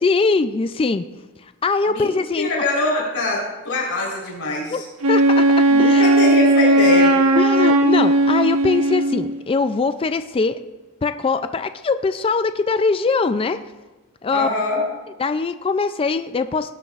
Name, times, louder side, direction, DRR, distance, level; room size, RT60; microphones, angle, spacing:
voice 1, 0.0-1.0 1.4-2.5 4.7-6.1 7.4-10.6 11.0-13.6 14.2-14.5 15.2-16.7, left 4 dB, 25° left, 10 dB, 0.3 m, -22 dB
voice 2, 1.9-4.8 5.7-7.1 14.3-14.8, left 2 dB, 75° left, -3 dB, 4.0 m, -23 dB
Wind instrument woodwind instrument, 5.0-9.4, right 1 dB, 70° right, 1.1 m, -16 dB
18.5 x 11.5 x 2.5 m, 1.2 s
head